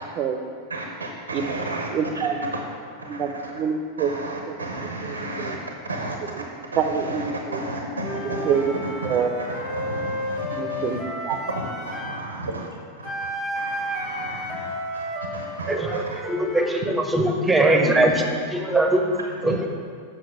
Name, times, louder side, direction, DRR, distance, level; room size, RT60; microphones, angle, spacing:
voice 1, 0.7-1.9 2.2-2.3 2.5-2.6 3.1-3.2 4.0-5.6 5.9-6.2 6.7-11.0 11.5-12.7 13.0-13.3 13.5-15.0 15.3-16.0 19.4-19.6, right 2 dB, 75° right, 2 dB, 0.9 m, -33 dB
voice 2, 1.3-2.6 3.1-4.1 4.5-5.6 6.2-6.5 6.8-7.6 8.4-9.3 10.5-11.4, right 6 dB, 35° right, 7 dB, 0.8 m, -27 dB
Wind instrument woodwind instrument, 8.0-12.3 13.0-16.9, equal, 30° left, 1.6 m, -32 dB
voice 3, 15.7-19.7, right 1 dB, 10° right, 3 dB, 1.0 m, -21 dB
7.8 x 6.2 x 6.2 m, 2.2 s
figure-of-eight pair, 90°, 0 cm